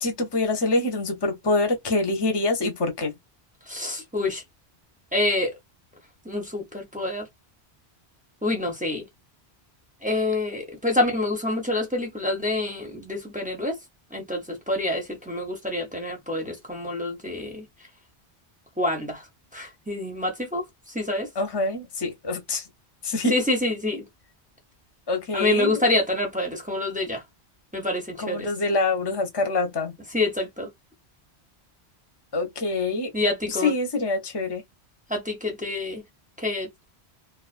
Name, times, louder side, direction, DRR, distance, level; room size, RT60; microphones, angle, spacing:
voice 1, 0.0-3.1 21.4-22.7 23.0-23.3 25.1-25.8 28.2-29.9 32.3-33.1 33.5-34.6, left 2 dB, 30° left, 0.6 m, -25 dB
voice 2, 3.7-4.4 5.1-5.6 6.2-7.3 8.4-9.1 10.0-13.8 14.1-17.6 18.8-19.3 19.5-21.3 23.3-24.0 25.3-27.2 27.7-28.5 30.1-30.7 33.1-33.7 35.1-36.0 36.4-36.7, left 2 dB, 10° right, 0.5 m, -27 dB
2.4 x 2.3 x 2.4 m
omnidirectional pair, 1.1 m